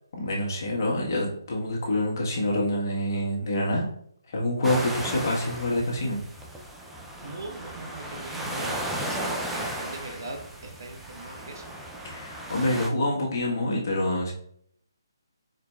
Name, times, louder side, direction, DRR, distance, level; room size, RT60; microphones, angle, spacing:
voice 1, 0.1-3.8 4.3-6.2 12.0-14.3, left 1 dB, 45° left, -2 dB, 1.4 m, -26 dB
sound 1, 4.6-12.9, right 1 dB, 5° right, 0.4 m, -35 dB
voice 2, 7.2-11.7, right 2 dB, 55° right, 4 dB, 0.9 m, -40 dB
4.9 x 4.2 x 2.3 m, 0.67 s
figure-of-eight pair, 145°, 2 cm